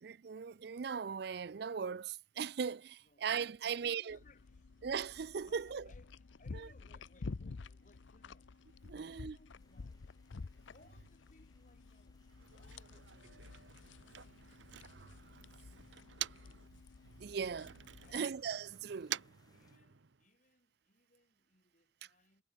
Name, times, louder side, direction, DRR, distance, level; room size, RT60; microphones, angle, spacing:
voice 1, 0.0-4.2 4.8-5.8 8.8-9.3 14.8-15.2 17.2-17.7 18.1-19.1, right 6 dB, 55° right, 0.4 m, -39 dB
voice 2, 3.0-4.8 5.4-8.6 9.0-10.1 10.7-13.9 15.6-16.7 18.0-18.4 18.9-22.4, left 2 dB, 40° left, 4.9 m, -67 dB
sound 1, 4.1-18.2, left 4 dB, 75° left, 0.6 m, -51 dB
sound 2, 9.6-19.8, left 2 dB, 20° left, 4.7 m, -74 dB
Motor vehicle (road), 12.2-16.7 17.0-20.3, right 12 dB, 70° right, 0.9 m, -48 dB
head